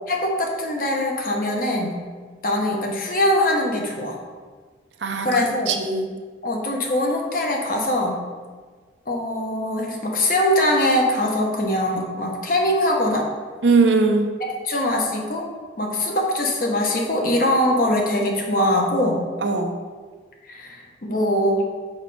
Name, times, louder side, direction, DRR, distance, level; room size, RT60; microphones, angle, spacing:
voice 1, 0.1-2.0 2.4-4.2 5.2-5.7 6.4-8.2 9.1-13.3 14.6-15.5 15.8-19.2 20.5-21.6, left 1 dB, 50° left, 0 dB, 1.0 m, -22 dB
voice 2, 5.0-6.1 13.6-14.3 19.4-19.7, right 4 dB, 80° right, 4 dB, 0.7 m, -20 dB
6.4 x 5.1 x 3.3 m, 1.5 s
head